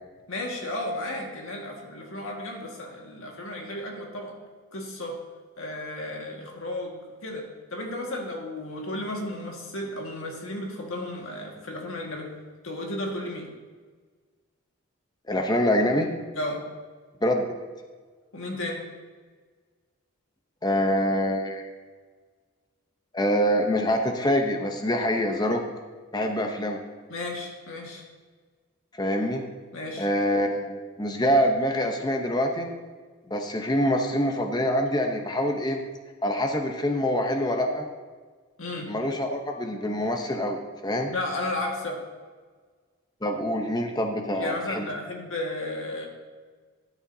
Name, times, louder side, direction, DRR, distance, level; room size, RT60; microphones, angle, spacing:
voice 1, 0.3-4.4 4.7-5.2 5.6-12.3 12.6-13.5 16.4-16.6 18.3-18.8 27.1-28.0 29.7-30.1 38.6-38.9 41.1-42.0 44.4-46.1, left 1 dB, 70° left, 0 dB, 1.8 m, -33 dB
voice 2, 15.3-16.1 17.2-17.4 20.6-21.7 23.1-25.6 26.1-26.8 29.0-29.4 30.0-32.7 33.3-35.8 36.2-37.9 38.9-41.1 43.2-44.9, equal, 20° left, 4 dB, 0.8 m, -25 dB
12.5 x 10.0 x 2.8 m, 1.5 s
head